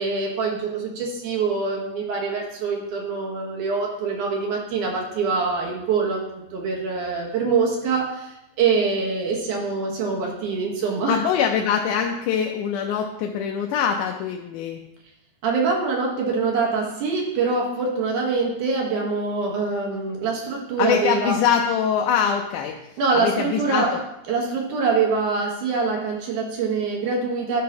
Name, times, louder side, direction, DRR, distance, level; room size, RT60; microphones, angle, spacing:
voice 1, 0.0-11.2 15.4-21.4 23.0-23.9 24.3-27.6, right 4 dB, 70° right, -1 dB, 2.7 m, -24 dB
voice 2, 11.1-14.8 20.8-22.8 23.1-24.0, left 8 dB, 80° left, 2 dB, 2.0 m, -23 dB
11.5 x 5.6 x 2.9 m, 0.87 s
omnidirectional pair, 3.8 m